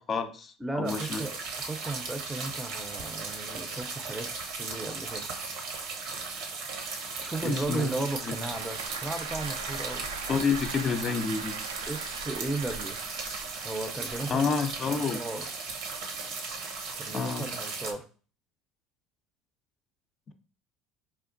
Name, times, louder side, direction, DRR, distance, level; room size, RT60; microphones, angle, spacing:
voice 1, 0.0-1.2 7.4-7.9 8.2-8.3 10.3-11.6 14.3-15.2 17.1-17.5 20.3-20.4, left 5 dB, 40° left, 7 dB, 0.5 m, -29 dB
voice 2, 0.6-4.3 4.6-5.3 7.2-10.1 11.9-13.0 13.6-15.5 17.0-18.1, right 2 dB, 10° right, 7 dB, 0.5 m, -35 dB
sound 1, 0.8-17.9, right 4 dB, 70° right, 0.7 m, -37 dB
Applause / Crowd, 7.4-13.9, right 5 dB, 90° right, 0.4 m, -41 dB
4.3 x 2.3 x 2.5 m, 0.39 s
hypercardioid pair, 75°, 0 cm